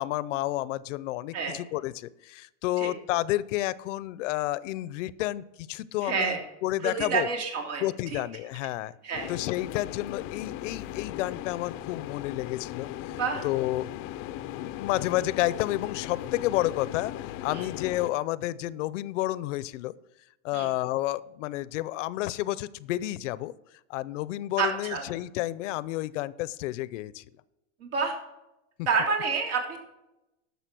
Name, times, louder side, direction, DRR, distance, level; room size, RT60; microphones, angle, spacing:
voice 1, 0.0-7.3 7.8-8.9 9.3-13.2 13.4-13.9 14.6-17.1 17.4-19.9 20.4-23.5 23.9-27.2, left 16 dB, 80° left, 19 dB, 0.6 m, -30 dB
voice 2, 6.0-6.4 6.8-7.8 8.1-8.2 9.0-9.3 13.1-13.4 17.5-17.7 20.5-20.7 24.6-25.0 27.8-28.1 28.9-29.8, right 5 dB, 70° right, 2 dB, 3.3 m, -28 dB
sound 1, 9.1-18.1, left 13 dB, 35° left, 0.5 m, -38 dB
11.5 x 6.8 x 6.1 m, 0.92 s
supercardioid pair, 150°, 36 cm